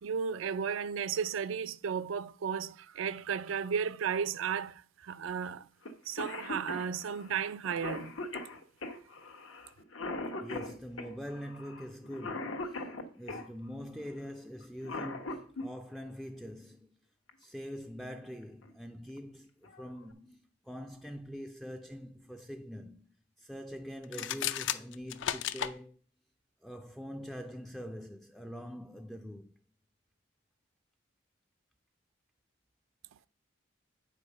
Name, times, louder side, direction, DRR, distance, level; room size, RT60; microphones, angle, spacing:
voice 1, 0.0-5.7 6.1-8.1, right 7 dB, 80° right, 0.4 m, -34 dB
Cough, 5.8-5.9 6.2-13.5 14.6-15.7 17.3-17.4 18.4-18.7 19.2-19.3 19.6-20.1, left 2 dB, 90° left, 1.2 m, -40 dB
voice 2, 10.4-17.0 17.4-26.0 26.6-29.5, equal, ahead, 0.3 m, -44 dB
sound 1, 24.0-25.7, left 10 dB, 65° left, 0.4 m, -34 dB
8.3 x 5.0 x 5.3 m
head